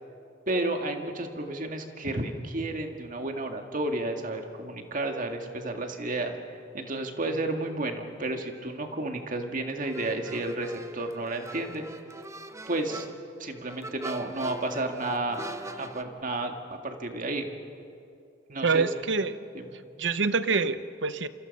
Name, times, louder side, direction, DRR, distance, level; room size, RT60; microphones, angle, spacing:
voice 1, 0.5-11.8 12.7-13.1 13.4-15.4 15.8-17.5 18.5-18.9 19.5-19.7, right 2 dB, 45° right, 4 dB, 1.9 m, -32 dB
sound 1, 9.8-16.0, right 2 dB, 15° right, 0.8 m, -41 dB
voice 2, 18.6-19.4 20.0-21.3, right 4 dB, 70° right, 13 dB, 0.9 m, -26 dB
27.5 x 26.5 x 5.4 m, 2.6 s
head